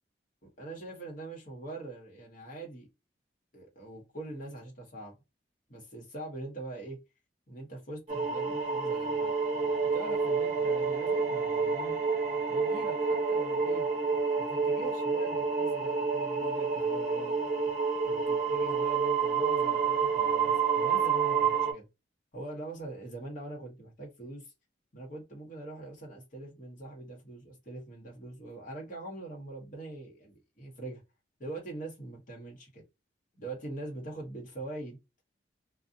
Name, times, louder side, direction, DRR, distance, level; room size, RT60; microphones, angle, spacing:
voice 1, 0.4-2.9 3.5-5.1 5.7-7.0 7.5-9.3 9.9-12.0 12.5-13.9 14.4-17.4 18.0-21.9 22.3-24.5 24.9-31.0 31.4-32.8 33.3-35.0, right 2 dB, 45° left, 1.0 m, -43 dB
sound 1, 8.1-21.7, right 5 dB, 40° right, 0.7 m, -29 dB
2.6 x 2.1 x 2.6 m
head